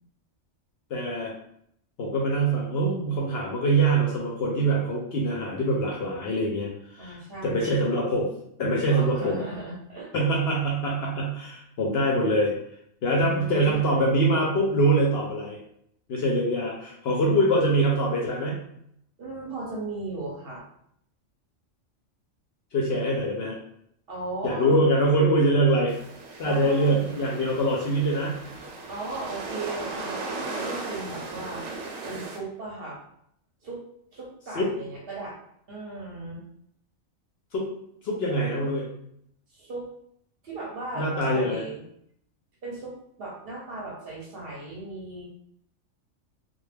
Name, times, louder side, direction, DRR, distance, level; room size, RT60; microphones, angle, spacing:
voice 1, 0.9-1.3 2.0-7.2 7.4-8.3 8.6-9.4 10.1-12.5 13.0-15.6 16.1-18.6 22.7-23.6 24.4-25.9 26.4-28.4 34.6-34.7 37.5-37.7 38.0-38.9 41.0-41.6, right 1 dB, 65° left, -2 dB, 0.7 m, -24 dB
voice 2, 7.0-7.9 8.9-10.1 13.2-14.1 17.2-17.7 19.2-20.6 24.1-24.9 26.4-27.1 28.9-31.6 32.1-33.0 33.6-33.8 34.1-35.4 35.7-36.4 39.5-39.9 40.4-41.8 42.6-45.3, right 2 dB, 55° right, -3 dB, 0.8 m, -37 dB
sound 1, 25.9-32.4, right 3 dB, 80° right, 1.0 m, -37 dB
2.2 x 2.2 x 3.2 m, 0.70 s
omnidirectional pair, 1.4 m